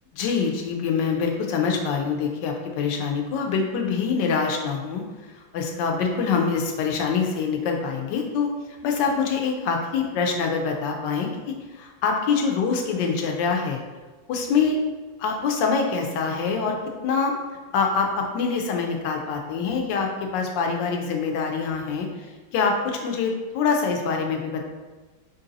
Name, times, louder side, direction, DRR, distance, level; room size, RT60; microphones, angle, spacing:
voice 1, 0.1-8.5 8.8-13.8 14.3-14.8 15.2-16.8 17.0-17.3 17.7-24.6, left 5 dB, 70° left, 2 dB, 1.3 m, -25 dB
4.5 x 2.7 x 3.8 m, 1.3 s
omnidirectional pair, 2.1 m